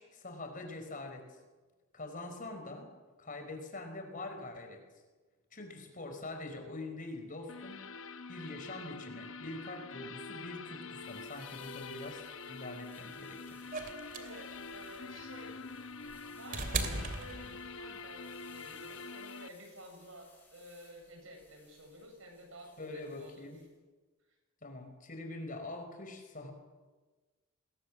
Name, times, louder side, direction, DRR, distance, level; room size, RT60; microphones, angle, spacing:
voice 1, 0.0-1.4 1.9-2.9 3.2-4.8 5.5-7.9 8.3-13.6 16.8-17.0 22.8-23.6 24.6-26.5, left 2 dB, 40° left, 5 dB, 5.0 m, -44 dB
sound 1, 7.5-19.5, left 4 dB, 65° left, 1.0 m, -46 dB
sound 2, 10.9-23.7, left 3 dB, 10° left, 7.6 m, -64 dB
sound 3, 13.7-18.0 19.2-19.3, right 3 dB, 40° right, 2.7 m, -38 dB
voice 2, 14.2-15.6 16.3-23.5, right 1 dB, 65° right, 4 dB, 7.3 m, -52 dB
28.5 x 21.5 x 7.5 m, 1.3 s
head